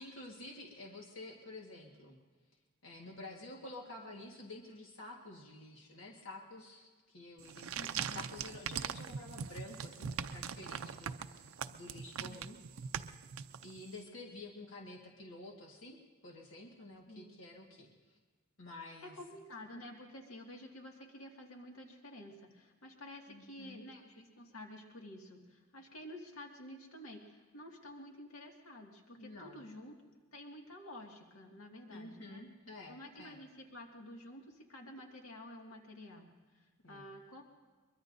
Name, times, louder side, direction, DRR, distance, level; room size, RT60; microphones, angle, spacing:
voice 1, 0.0-2.2 2.8-12.9 13.6-16.0 16.2-18.2 18.6-19.2 23.3-23.8 29.2-29.6 31.9-33.4 36.8-37.1, left 2 dB, 65° left, 0 dB, 1.6 m, -50 dB
sound 1, 7.4-14.0, right 7 dB, 85° right, 0.5 m, -41 dB
voice 2, 7.7-8.2 12.2-12.5 17.1-17.3 19.0-32.4 32.9-37.5, left 1 dB, 85° left, 1 dB, 2.0 m, -51 dB
23.0 x 22.5 x 2.6 m, 1.4 s
head